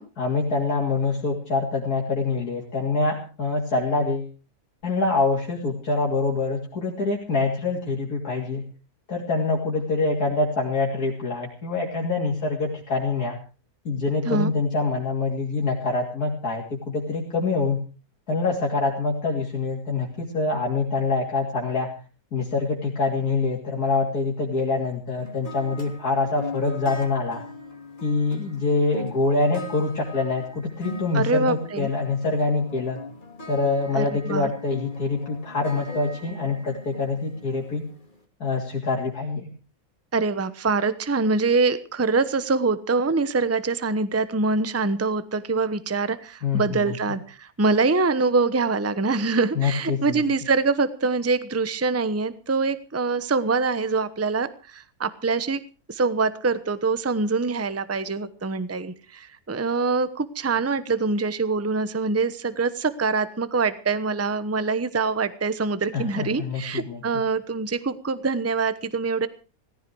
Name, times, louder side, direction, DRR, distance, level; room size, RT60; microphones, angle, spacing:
voice 1, 0.2-4.3 4.8-8.6 9.1-13.4 13.9-17.8 18.3-21.9 22.3-27.4 28.0-33.0 33.5-37.8 38.4-39.5 46.4-47.0 49.6-50.2 65.9-67.0, left 3 dB, 75° left, -2 dB, 3.6 m, -25 dB
sound 1, 25.2-38.2, left 2 dB, 30° left, 3.1 m, -40 dB
voice 2, 31.1-31.9 33.9-34.5 40.1-55.6 55.9-69.3, right 4 dB, 10° right, 14 dB, 0.8 m, -24 dB
18.0 x 15.0 x 4.7 m, 0.37 s
omnidirectional pair, 1.6 m